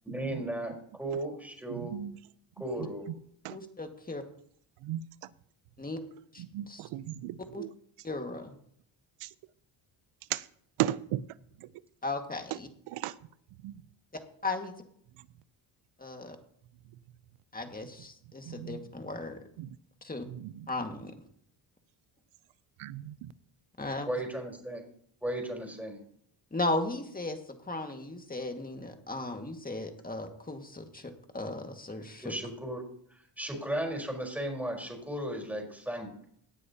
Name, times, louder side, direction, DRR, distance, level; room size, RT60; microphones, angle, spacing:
voice 1, 0.0-1.9 2.6-3.0 24.1-24.8 25.2-26.0 32.2-32.8 33.1-36.1, right 1 dB, 5° right, -1 dB, 4.4 m, -35 dB
voice 2, 1.7-2.2 2.8-2.9 3.4-3.6 4.8-5.3 6.4-7.7 9.2-9.3 10.3-10.5 10.8-11.3 11.6-11.7 12.5-12.6 12.9-13.2 13.6-13.8 15.2-15.3 18.5-18.9 19.6-19.8 20.3-20.7 22.8-23.3, right 13 dB, 80° right, 18 dB, 0.7 m, -36 dB
voice 3, 3.5-4.2 5.8-6.0 6.3-6.4 6.7-6.8 7.5-7.6 8.0-8.5 12.0-12.7 14.4-14.7 16.0-16.4 17.5-19.4 20.0-20.3 20.7-21.1 23.8-24.1 26.5-27.4 27.6-32.3, left 2 dB, 15° left, 4 dB, 1.9 m, -36 dB
18.0 x 9.7 x 2.9 m, 0.65 s
cardioid pair, 80°, 50 cm